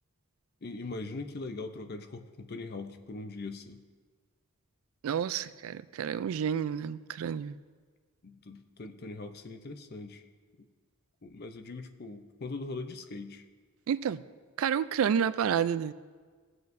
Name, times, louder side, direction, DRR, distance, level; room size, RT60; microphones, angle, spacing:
voice 1, 0.6-3.8 8.2-10.2 11.2-13.4, left 3 dB, 45° left, 8 dB, 0.6 m, -41 dB
voice 2, 5.0-7.6 13.9-14.2 14.6-15.9, right 8 dB, 75° right, 15 dB, 0.3 m, -30 dB
17.0 x 7.8 x 2.6 m, 1.5 s
head